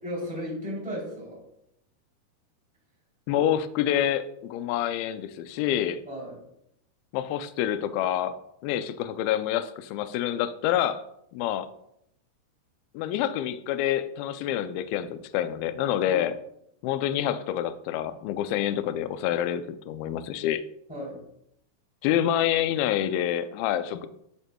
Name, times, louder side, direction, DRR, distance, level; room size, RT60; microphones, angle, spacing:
voice 1, 0.0-1.4 6.0-6.4 16.0-16.3 20.9-21.2, equal, ahead, -5 dB, 2.3 m, -35 dB
voice 2, 3.3-6.0 7.1-11.0 11.3-11.7 12.9-16.4 16.8-20.6 22.0-24.1, left 11 dB, 80° left, 11 dB, 2.2 m, -27 dB
12.5 x 5.5 x 2.3 m, 0.76 s
omnidirectional pair, 4.5 m